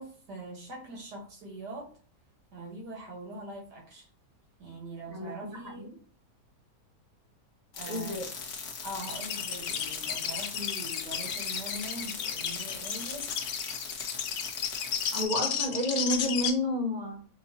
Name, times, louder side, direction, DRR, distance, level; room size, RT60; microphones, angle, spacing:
voice 1, 0.0-1.9 2.5-4.1 4.6-6.0 7.7-8.2 8.8-13.3, right 1 dB, 80° right, 0 dB, 2.0 m, -42 dB
voice 2, 5.1-5.9 7.9-8.3 15.1-17.3, left 1 dB, 35° right, 1 dB, 0.7 m, -31 dB
sound 1, 7.7-15.2, left 5 dB, 55° left, 1.0 m, -40 dB
sound 2, 9.0-16.5, left 8 dB, 80° left, 1.3 m, -33 dB
6.0 x 2.8 x 2.8 m, 0.43 s
omnidirectional pair, 1.8 m